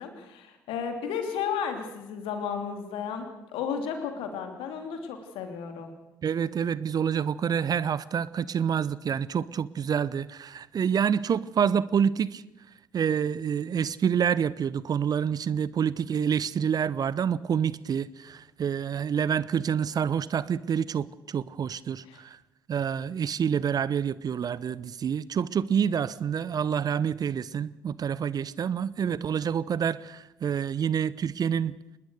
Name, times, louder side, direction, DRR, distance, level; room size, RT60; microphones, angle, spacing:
voice 1, 0.0-5.9 22.0-22.2, left 7 dB, 60° left, 3.1 m, -33 dB
voice 2, 6.2-12.4 12.9-22.4 22.7-31.7, right 7 dB, 40° right, 0.7 m, -27 dB
24.5 x 20.5 x 6.6 m
figure-of-eight pair, 45°, 10 cm